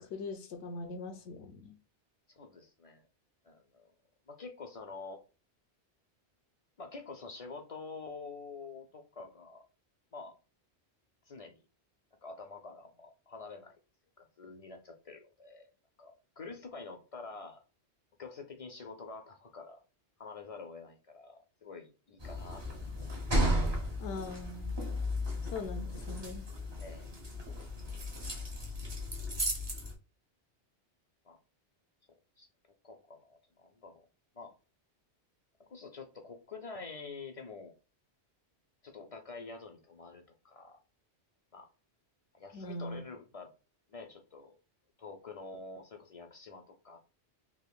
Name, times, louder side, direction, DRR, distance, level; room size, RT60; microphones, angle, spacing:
voice 1, 0.0-1.8 24.0-24.7 25.5-26.4 42.5-43.0, left 3 dB, 80° left, 1.0 m, -41 dB
voice 2, 2.3-3.1 3.4-3.9 4.3-5.2 6.8-9.6 10.1-10.3 11.3-11.6 12.2-13.8 14.2-15.7 16.0-17.6 18.2-19.8 20.2-22.6 26.8-27.1 31.2-31.4 32.4-32.5 32.8-34.0 34.3-34.5 35.7-37.7 38.8-40.8 41.5-41.7 42.3-43.5 43.9-44.6 45.0-47.0, left 4 dB, 50° left, 0.4 m, -47 dB
sound 1, 22.2-29.9, equal, 25° right, 0.7 m, -34 dB
3.5 x 2.8 x 2.2 m
omnidirectional pair, 1.2 m